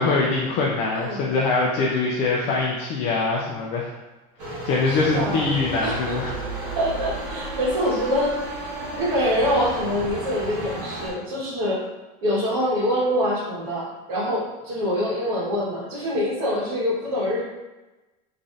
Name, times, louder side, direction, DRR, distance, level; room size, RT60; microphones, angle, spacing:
voice 1, 0.0-3.9 4.4-6.3, left 3 dB, 35° left, -3 dB, 0.4 m, -23 dB
voice 2, 0.9-1.3 4.8-5.5 5.8-8.3 8.8-11.8 12.2-17.4, equal, 80° right, -11 dB, 1.4 m, -25 dB
sound 1, 4.4-11.1, right 2 dB, 40° right, 1.5 m, -32 dB
3.9 x 3.1 x 2.6 m, 1.1 s
supercardioid pair, 170°, 18 cm